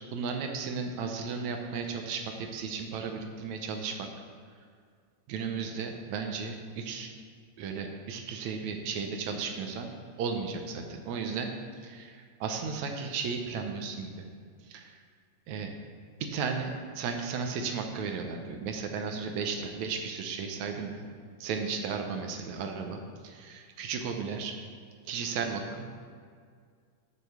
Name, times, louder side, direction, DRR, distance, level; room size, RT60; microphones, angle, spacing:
voice 1, 0.1-4.1 5.3-7.1 7.6-9.9 10.2-11.5 11.8-14.1 14.7-15.0 15.5-15.7 16.2-21.0 21.4-24.5 25.1-25.9, right 5 dB, 75° right, 4 dB, 2.0 m, -34 dB
7.0 x 6.6 x 6.7 m, 2.1 s
omnidirectional pair, 3.6 m